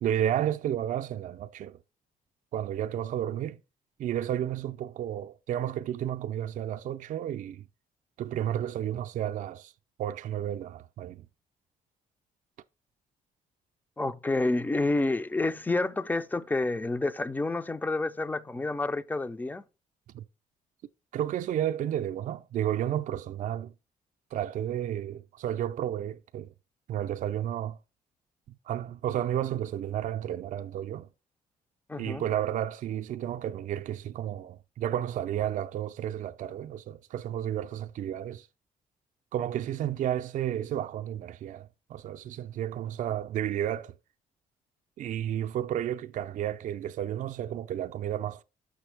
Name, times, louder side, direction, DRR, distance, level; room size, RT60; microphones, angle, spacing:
voice 1, 0.0-1.8 2.5-3.6 4.0-7.6 8.2-9.7 10.0-11.3 20.1-20.2 21.1-23.7 24.3-26.5 26.9-27.8 28.5-31.1 32.0-38.5 39.3-44.0 45.0-48.4, right 11 dB, 55° right, 0.4 m, -32 dB
voice 2, 14.0-19.6 31.9-32.2, left 2 dB, 10° left, 0.4 m, -29 dB
6.3 x 6.0 x 3.3 m
cardioid pair, 110°, 15 cm